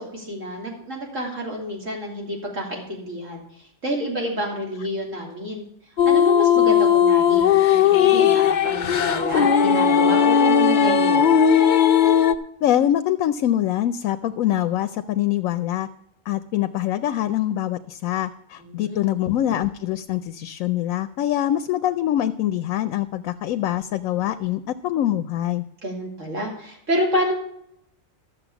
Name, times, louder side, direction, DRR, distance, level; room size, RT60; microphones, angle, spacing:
voice 1, 0.0-3.4 3.8-5.6 6.1-11.3 18.6-19.0 25.8-27.3, equal, 70° right, -1 dB, 3.5 m, -28 dB
sound 1, 6.0-12.3, left 8 dB, 50° left, 0.6 m, -17 dB
voice 2, 12.6-15.9 16.3-25.6, left 12 dB, 90° left, 11 dB, 1.0 m, -24 dB
12.5 x 7.3 x 7.0 m, 0.74 s
omnidirectional pair, 1.4 m